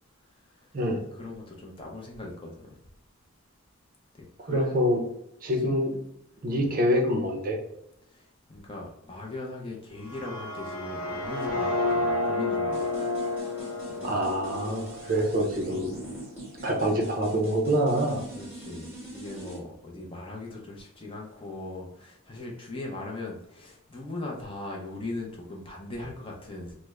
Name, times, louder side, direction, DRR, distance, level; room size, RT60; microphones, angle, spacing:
voice 1, 1.1-2.8 4.4-4.8 6.5-6.7 8.1-13.0 13.4-13.5 13.9-14.3 15.1-15.2 18.3-26.8, left 2 dB, 25° left, -1 dB, 0.5 m, -39 dB
voice 2, 4.5-5.0 5.4-6.0 6.4-7.6 14.0-15.9 16.6-18.2, equal, 40° right, 2 dB, 0.5 m, -26 dB
sound 1, 10.0-16.0, left 2 dB, 75° left, 0.8 m, -31 dB
sound 2, 12.7-19.6, right 1 dB, 10° right, 0.9 m, -43 dB
3.3 x 2.0 x 3.4 m, 0.79 s
head